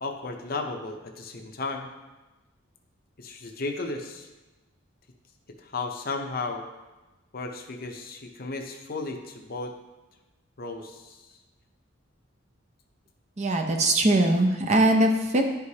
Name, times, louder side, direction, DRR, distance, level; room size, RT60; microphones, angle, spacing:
voice 1, 0.0-1.9 3.2-4.3 5.6-6.7 7.3-9.7 10.6-11.3, left 3 dB, 45° left, 4 dB, 0.7 m, -34 dB
voice 2, 13.4-15.4, right 1 dB, 35° right, 3 dB, 0.6 m, -21 dB
10.5 x 4.8 x 2.8 m, 1.1 s
head